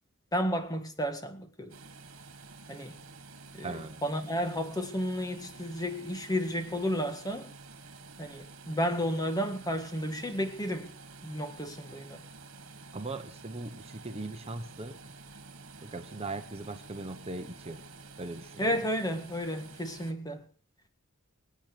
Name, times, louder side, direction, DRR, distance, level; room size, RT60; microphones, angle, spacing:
voice 1, 0.3-1.7 2.7-3.0 3.5-7.5 8.2-10.9 11.2-12.2 18.6-20.5, equal, 15° left, 1.8 m, -32 dB
sound 1, 1.7-20.1, right 3 dB, 60° right, 2.4 m, -50 dB
voice 2, 3.6-4.0 12.9-15.0 15.8-17.8 18.2-18.7, right 2 dB, 25° right, 1.1 m, -39 dB
24.5 x 9.2 x 5.1 m
head